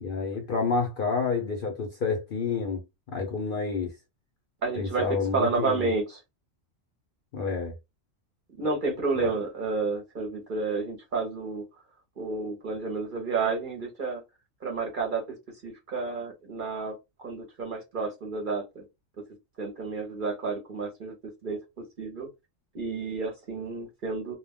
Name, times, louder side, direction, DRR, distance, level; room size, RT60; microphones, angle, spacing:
voice 1, 0.0-2.8 3.1-3.9 4.8-5.9 7.3-7.7, left 4 dB, 55° left, 0.6 m, -29 dB
voice 2, 4.6-5.1 5.3-6.2 8.6-11.6 12.2-14.2 14.6-15.4 15.6-18.8 19.6-21.1 21.4-22.3 22.7-24.4, right 4 dB, 50° right, 0.7 m, -30 dB
2.2 x 2.1 x 3.4 m
omnidirectional pair, 1.3 m